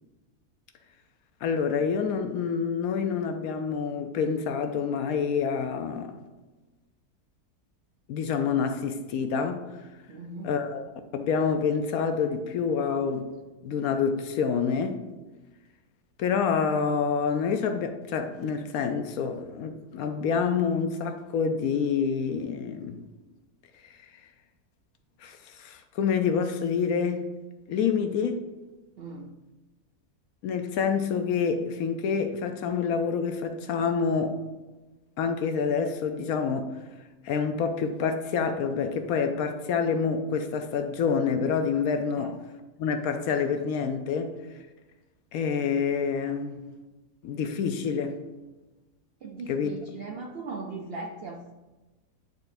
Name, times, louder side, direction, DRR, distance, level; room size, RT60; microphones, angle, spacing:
voice 1, 1.4-6.1 8.1-9.7 10.4-10.8 11.1-13.3 13.6-15.0 16.2-23.0 25.2-27.3 27.7-28.4 30.4-34.4 35.2-36.7 37.2-42.3 42.8-44.3 45.3-46.6 47.2-48.2 49.5-49.7, left 6 dB, 70° left, 1.0 m, -27 dB
voice 2, 10.1-10.5 29.0-29.3 42.1-42.3 49.2-51.5, right 3 dB, 70° right, 0.5 m, -38 dB
9.5 x 4.5 x 2.6 m
omnidirectional pair, 1.7 m